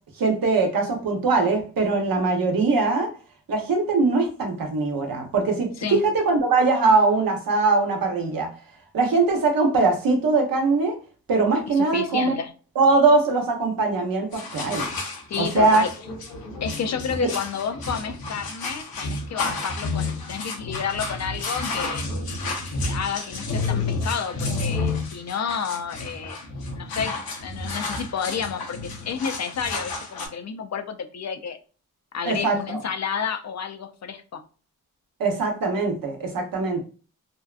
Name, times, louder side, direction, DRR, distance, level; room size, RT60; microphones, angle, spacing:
voice 1, 0.2-3.1 3.5-8.5 8.9-11.0 11.3-12.3 12.8-14.9 15.4-15.8 17.2-17.3 32.3-32.6 35.2-36.8, right 3 dB, 70° right, 0.8 m, -21 dB
voice 2, 11.7-12.5 15.3-15.9 16.6-22.1 22.9-26.4 26.8-31.6 32.1-34.4, left 7 dB, 50° left, 0.5 m, -30 dB
sound 1, 14.3-30.3, left 3 dB, 80° left, 0.8 m, -31 dB
2.7 x 2.2 x 2.3 m
cardioid pair, 65°, 36 cm